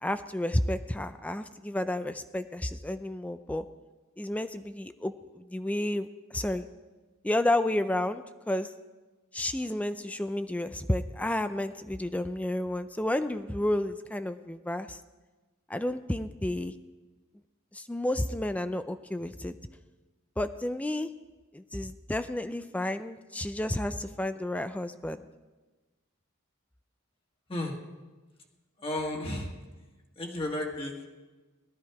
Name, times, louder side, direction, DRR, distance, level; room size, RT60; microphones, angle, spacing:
voice 1, 0.0-3.6 4.2-6.7 7.2-8.7 9.3-15.0 15.7-16.7 17.7-19.6 20.4-21.1 21.5-25.2, left 1 dB, 5° left, 11 dB, 0.4 m, -31 dB
voice 2, 28.8-29.5 30.2-31.0, left 1 dB, 25° left, 0 dB, 1.6 m, -33 dB
17.5 x 12.5 x 4.7 m, 1.2 s
head